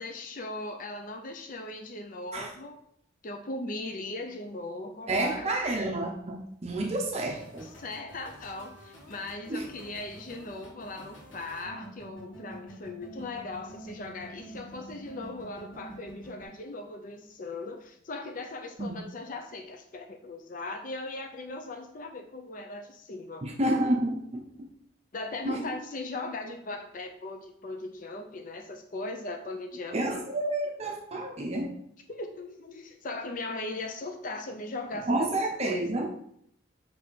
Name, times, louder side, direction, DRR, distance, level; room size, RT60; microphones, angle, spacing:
voice 1, 0.0-2.8 3.2-5.5 7.6-23.5 25.1-30.2 32.1-36.0, left 2 dB, 45° left, 4 dB, 0.5 m, -39 dB
voice 2, 5.1-7.7 9.5-9.7 18.8-19.0 23.4-24.7 25.5-25.6 29.9-31.8 35.1-36.1, right 1 dB, 35° right, 2 dB, 0.6 m, -30 dB
sound 1, 7.3-16.4, right 1 dB, 85° left, 1.8 m, -47 dB
5.5 x 3.3 x 5.1 m, 0.69 s
head